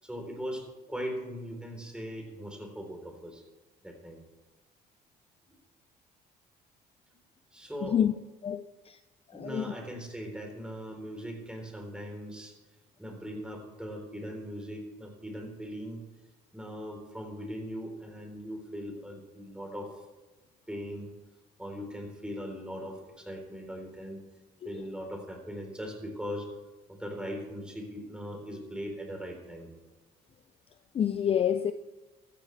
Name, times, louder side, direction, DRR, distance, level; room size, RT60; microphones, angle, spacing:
voice 1, 0.0-3.4 3.8-4.2 7.5-8.0 9.3-12.6 13.0-16.0 16.5-20.0 20.7-21.1 21.6-24.2 24.6-26.5 26.9-29.7, equal, 5° right, 3.7 m, -40 dB
voice 2, 7.8-8.1 8.4-9.0 9.3-9.7 24.6-24.7 30.9-31.7, left 9 dB, 35° left, 0.5 m, -28 dB
14.5 x 14.0 x 3.3 m
cardioid pair, 110°, 17 cm